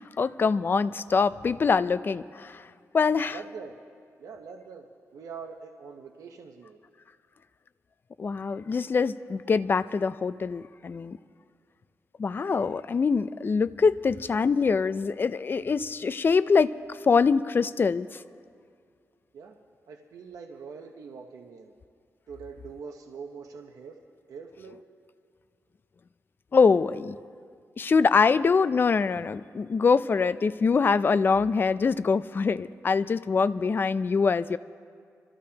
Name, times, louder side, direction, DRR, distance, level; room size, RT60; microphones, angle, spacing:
voice 1, 0.2-2.6 2.9-3.4 8.2-11.2 12.2-18.1 26.5-27.1 27.8-34.6, left 5 dB, 40° left, 14 dB, 0.4 m, -24 dB
voice 2, 3.3-3.7 4.2-4.9 5.1-6.8 19.3-19.6 19.9-21.7 22.3-24.0 24.3-24.8, right 5 dB, 90° right, 3 dB, 0.9 m, -43 dB
26.5 x 13.5 x 2.9 m, 2.2 s
wide cardioid pair, 105°, 6 cm